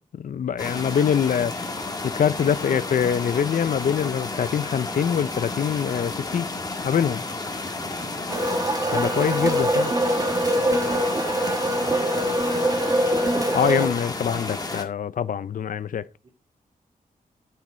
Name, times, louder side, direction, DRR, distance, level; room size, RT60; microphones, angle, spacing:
voice 1, 0.1-1.5 2.0-6.5 6.8-7.2 8.9-9.9 13.5-16.0, left 8 dB, 65° left, 0.6 m, -24 dB
sound 1, 0.6-14.8, left 2 dB, 25° left, 1.7 m, -32 dB
voice 2, 7.6-8.4 10.6-10.9 11.6-12.7 16.2-16.3, right 3 dB, 45° right, 2.8 m, -43 dB
sound 2, 8.3-13.9, right 1 dB, 25° right, 1.3 m, -23 dB
9.2 x 7.6 x 3.9 m
wide cardioid pair, 125°, 15 cm